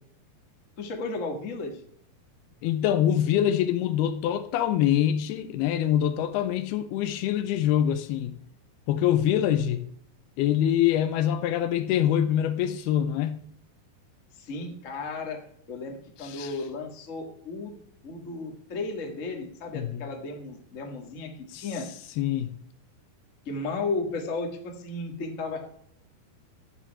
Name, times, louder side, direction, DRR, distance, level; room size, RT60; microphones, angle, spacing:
voice 1, 0.8-1.9 14.3-15.4 15.7-17.8 18.0-21.9 23.4-25.6, left 3 dB, 60° left, 0.7 m, -34 dB
voice 2, 2.6-8.4 8.9-9.9 10.4-13.4 16.2-16.5 19.7-20.1 21.5-21.7 22.2-22.6, left 10 dB, 85° left, 2.6 m, -25 dB
11.5 x 7.5 x 4.7 m
omnidirectional pair, 4.7 m